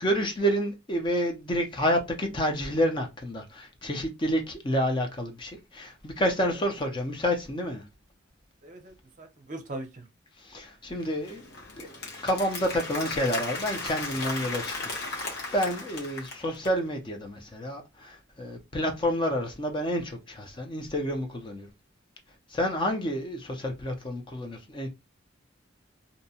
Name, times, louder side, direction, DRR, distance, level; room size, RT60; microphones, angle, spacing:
voice 1, 0.0-7.8 10.4-11.4 11.8-11.9 12.2-14.7 15.5-21.7 22.5-24.9, equal, 25° left, 0.5 m, -29 dB
voice 2, 8.6-10.0, right 2 dB, 40° right, 0.6 m, -40 dB
Applause, 11.0-16.8, left 2 dB, 55° left, 0.9 m, -36 dB
2.6 x 2.1 x 2.7 m
head